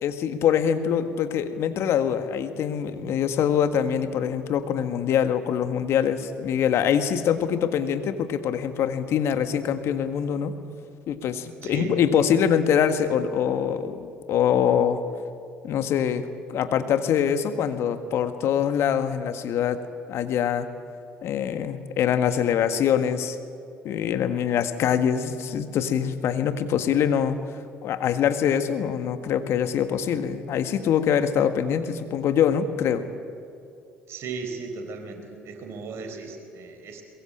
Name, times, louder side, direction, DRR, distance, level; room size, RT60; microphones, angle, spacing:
voice 1, 0.0-10.5 11.1-15.0 15.6-19.8 20.1-20.7 21.2-23.4 23.8-27.4 27.8-33.0, left 8 dB, 60° left, 9 dB, 1.7 m, -24 dB
voice 2, 11.6-12.0 34.1-37.0, right 4 dB, 60° right, 5 dB, 4.5 m, -36 dB
22.5 x 22.5 x 8.8 m, 2.5 s
hypercardioid pair, 55°, 5 cm